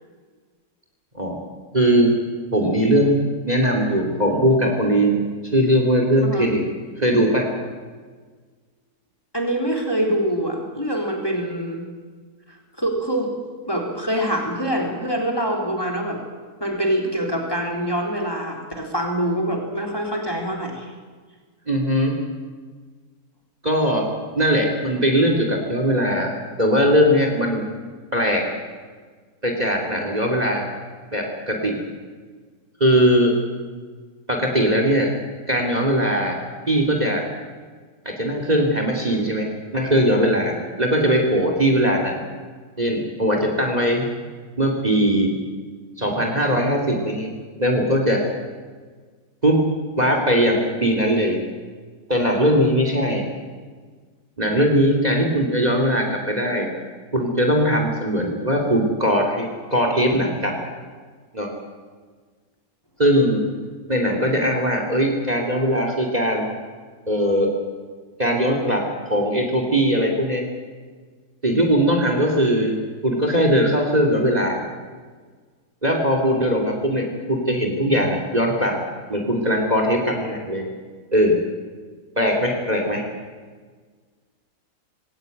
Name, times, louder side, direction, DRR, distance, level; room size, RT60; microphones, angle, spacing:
voice 1, 1.7-2.1 2.5-3.1 3.4-5.2 5.5-6.6 7.0-7.5 21.7-22.1 23.6-24.1 24.3-27.6 28.1-28.5 29.4-30.7 31.1-31.8 32.8-33.4 34.3-35.1 35.5-36.4 36.7-37.3 38.0-42.2 42.8-44.1 44.6-45.3 46.0-47.3 47.6-48.2 49.4-49.6 50.0-51.4 52.1-53.3 54.4-56.7 57.1-60.6 61.3-61.5 63.0-63.4 63.9-66.5 67.1-67.5 68.2-70.5 71.4-72.8 73.0-74.6 75.8-78.8 79.1-80.7 81.1-81.4 82.2-83.0, equal, 25° right, 2 dB, 2.9 m, -20 dB
voice 2, 9.3-11.9 12.5-13.3 13.6-16.2 16.6-20.9, right 1 dB, 15° left, 1 dB, 3.8 m, -25 dB
20.5 x 18.0 x 9.2 m, 1.5 s
omnidirectional pair, 1.7 m